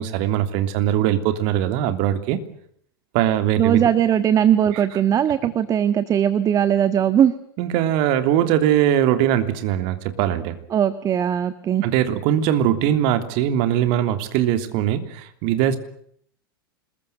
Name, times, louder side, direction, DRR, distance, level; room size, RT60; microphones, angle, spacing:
voice 1, 0.0-2.4 3.1-3.9 4.7-4.9 7.6-10.6 11.8-15.8, right 11 dB, 50° right, 9 dB, 3.1 m, -21 dB
voice 2, 3.6-7.3 10.7-11.8, right 9 dB, 30° right, 13 dB, 1.6 m, -19 dB
26.5 x 21.5 x 8.0 m, 0.66 s
figure-of-eight pair, 90°, 12 cm